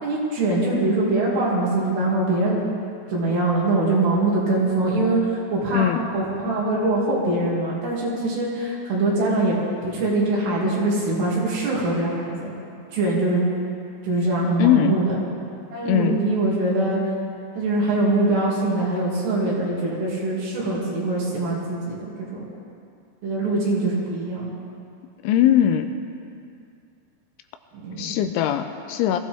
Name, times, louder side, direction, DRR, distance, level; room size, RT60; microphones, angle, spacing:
voice 1, 0.0-2.6 3.1-5.9 6.1-9.6 9.8-12.5 12.9-13.4 14.0-15.2 15.7-17.0 17.6-22.5 23.2-24.5 27.8-28.2, right 2 dB, 60° right, -5 dB, 4.4 m, -23 dB
voice 2, 14.6-15.0 15.9-16.2 25.2-25.9 28.0-29.2, left 11 dB, 85° left, 8 dB, 3.0 m, -20 dB
22.5 x 15.0 x 3.5 m, 2.4 s
omnidirectional pair, 5.6 m